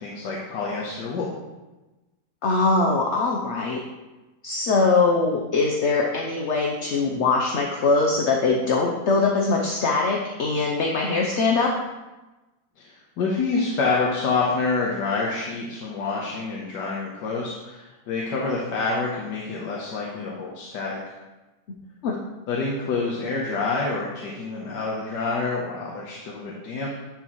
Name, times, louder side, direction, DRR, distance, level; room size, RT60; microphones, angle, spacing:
voice 1, 0.0-1.3 12.8-21.0 22.5-26.9, left 4 dB, 90° left, -4 dB, 1.7 m, -27 dB
voice 2, 2.4-3.8 4.4-11.7 22.0-22.2, left 3 dB, 55° left, 1 dB, 0.9 m, -22 dB
10.5 x 5.9 x 3.1 m, 1.1 s
omnidirectional pair, 1.8 m